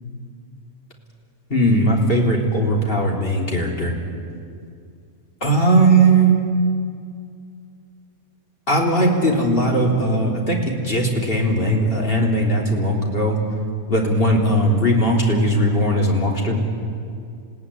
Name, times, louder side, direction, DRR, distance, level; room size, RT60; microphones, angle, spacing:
voice 1, 1.5-3.9 5.4-6.4 8.7-13.4 13.9-16.6, right 1 dB, 40° left, -1 dB, 3.6 m, -18 dB
27.5 x 17.0 x 9.9 m, 2.3 s
omnidirectional pair, 1.5 m